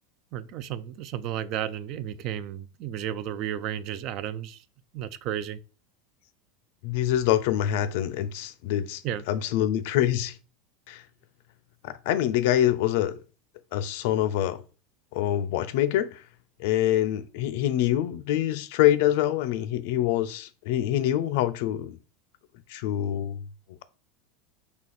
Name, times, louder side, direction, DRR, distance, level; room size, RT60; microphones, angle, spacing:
voice 1, 0.3-4.6 4.9-5.6 9.0-9.2, right 10 dB, 50° right, 0.3 m, -33 dB
voice 2, 6.8-9.0 9.3-10.4 10.9-11.0 11.8-13.2 13.7-14.6 15.1-16.2 16.6-22.0 22.7-23.4, left 12 dB, 70° left, 0.4 m, -25 dB
4.2 x 2.8 x 4.0 m
supercardioid pair, 130°, 0 cm